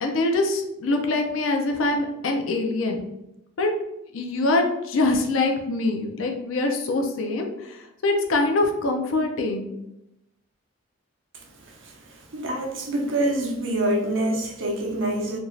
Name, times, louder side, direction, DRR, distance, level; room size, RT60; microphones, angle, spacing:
voice 1, 0.0-3.0 3.6-3.7 4.1-9.7, left 2 dB, 70° left, 0.4 m, -24 dB
voice 2, 11.3-15.4, right 1 dB, 65° right, 0.6 m, -26 dB
2.5 x 2.3 x 3.1 m
head